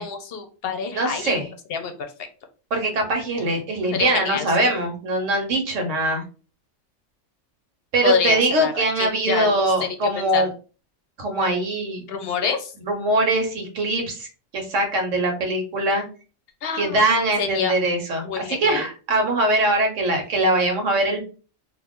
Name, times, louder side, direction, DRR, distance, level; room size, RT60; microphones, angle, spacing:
voice 1, 0.0-1.4 1.7-2.1 3.9-4.7 8.0-9.5 9.8-10.5 12.1-12.7 16.6-17.0 17.4-17.7 18.2-18.9, left 6 dB, 60° left, 6 dB, 0.7 m, -27 dB
voice 2, 0.9-1.5 2.7-6.2 7.9-10.5 11.2-12.0 12.8-14.3 14.5-16.0 16.8-21.2, right 1 dB, 75° right, 4 dB, 1.2 m, -22 dB
2.8 x 2.5 x 3.5 m, 0.37 s
omnidirectional pair, 1.3 m